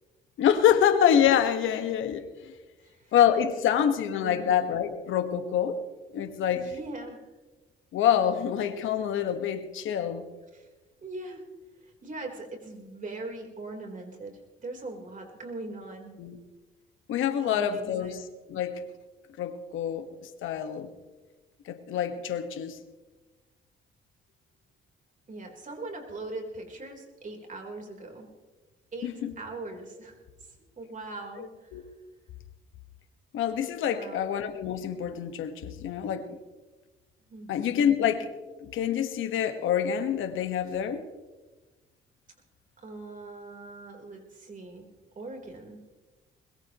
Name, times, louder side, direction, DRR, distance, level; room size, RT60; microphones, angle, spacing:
voice 1, 0.4-2.5 3.1-5.8 6.1-6.7 7.9-10.2 16.2-16.4 17.1-18.2 18.5-18.8 19.4-20.9 21.6-22.8 29.0-29.3 31.4-31.8 33.3-36.4 37.5-38.3 38.6-41.1, left 9 dB, 80° left, 8 dB, 1.5 m, -26 dB
voice 2, 6.5-7.2 10.5-10.7 11.0-11.4 11.8-16.1 17.4-18.2 25.3-28.3 28.9-30.1 30.8-31.7 33.9-34.2 37.3-37.5 42.8-44.9 45.2-45.8, right 2 dB, 40° right, 2 dB, 3.9 m, -41 dB
21.5 x 21.5 x 3.1 m, 1.2 s
cardioid pair, 90°, 20 cm